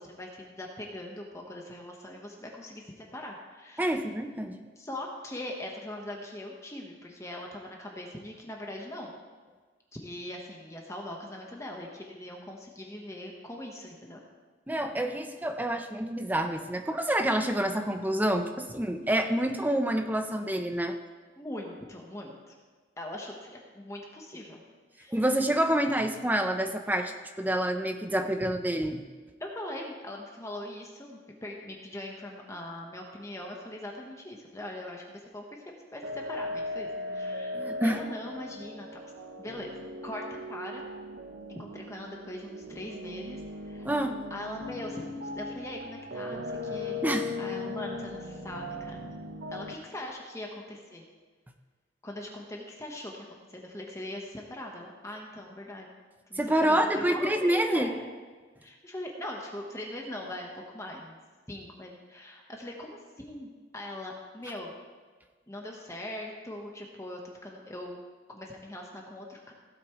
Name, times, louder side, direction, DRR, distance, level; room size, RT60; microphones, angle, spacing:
voice 1, 0.0-4.0 4.8-9.2 9.9-14.2 21.4-22.5 23.0-24.6 25.0-25.2 28.4-28.5 29.4-38.9 39.4-39.7 40.0-40.8 41.5-43.9 44.3-47.0 47.4-49.1 49.5-51.0 52.0-55.9 56.3-58.1 58.6-61.2 61.5-64.7 65.5-68.0 68.3-69.5, left 1 dB, 15° left, 0 dB, 1.2 m, -41 dB
voice 2, 3.8-4.6 14.7-21.0 25.1-29.1 37.5-38.0 43.8-44.2 47.0-47.3 56.4-57.9, right 1 dB, 10° right, 6 dB, 0.7 m, -27 dB
sound 1, 36.0-49.7, left 2 dB, 90° right, 1.0 m, -38 dB
16.5 x 8.3 x 3.1 m, 1.4 s
head